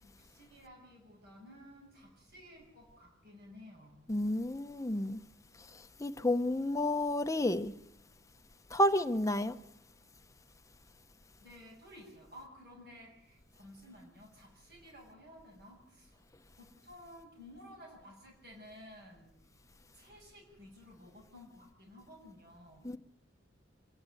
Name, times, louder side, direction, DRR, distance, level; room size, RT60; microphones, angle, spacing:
voice 1, 0.0-4.0 11.4-16.2 16.6-19.3 19.9-22.9, left 1 dB, 55° right, 6.7 m, -54 dB
voice 2, 4.1-5.2 6.0-7.7 8.7-9.6 22.8-23.0, left 1 dB, 15° left, 0.9 m, -30 dB
26.5 x 11.5 x 9.0 m
head